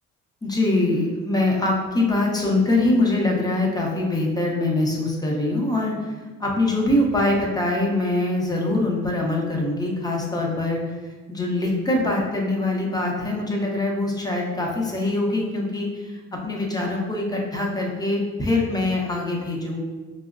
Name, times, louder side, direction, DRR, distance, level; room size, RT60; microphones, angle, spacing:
voice 1, 0.4-19.8, left 2 dB, 15° left, -1 dB, 0.7 m, -23 dB
4.3 x 2.0 x 2.4 m, 1.4 s
cardioid pair, 90°, 30 cm